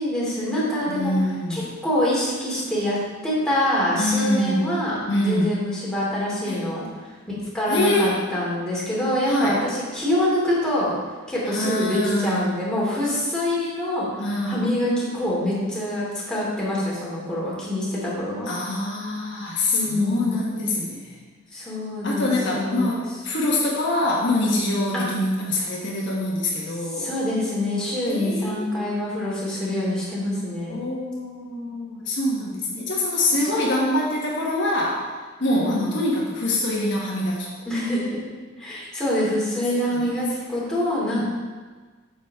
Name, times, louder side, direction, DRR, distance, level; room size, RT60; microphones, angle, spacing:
voice 1, 0.0-1.1 1.5-3.0 3.2-10.9 11.3-18.5 19.7-20.3 21.5-23.0 24.9-25.1 26.9-30.8 35.5-35.9 37.7-38.2 38.6-41.2, left 1 dB, 5° left, -7 dB, 2.9 m, -25 dB
voice 2, 0.9-1.7 4.0-5.5 6.5-6.6 7.7-8.2 9.3-9.6 11.4-12.6 14.2-14.7 18.5-21.2 22.0-27.1 28.1-28.9 30.7-35.1 35.4-37.5 39.7-40.1 41.2-41.3, left 1 dB, 65° left, -4 dB, 1.5 m, -25 dB
9.0 x 7.3 x 3.7 m, 1.4 s
head